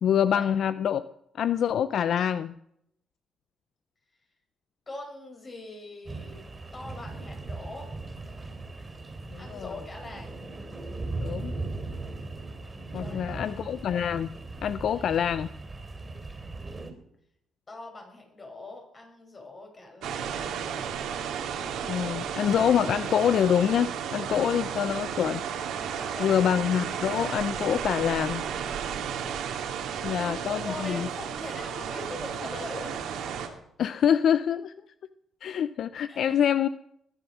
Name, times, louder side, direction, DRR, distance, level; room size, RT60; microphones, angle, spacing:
voice 1, 0.0-1.0 1.3-2.5 9.3-9.7 11.2-11.5 12.9-14.3 14.6-15.5 21.8-25.4 26.2-28.4 30.0-31.1 33.8-34.7 35.4-36.7, left 9 dB, 65° left, 14 dB, 0.5 m, -26 dB
voice 2, 4.9-6.4 6.7-7.9 9.4-10.4 12.9-13.6 14.9-15.1 17.7-20.6 25.9-26.3 29.8-33.0 36.1-36.4, left 2 dB, 35° left, 2 dB, 5.6 m, -42 dB
sound 1, 6.1-16.9, right 2 dB, 20° right, 3.5 m, -38 dB
sound 2, 20.0-33.5, right 7 dB, 85° right, 2.7 m, -33 dB
20.5 x 11.0 x 6.2 m, 0.78 s
cardioid pair, 90°, 0 cm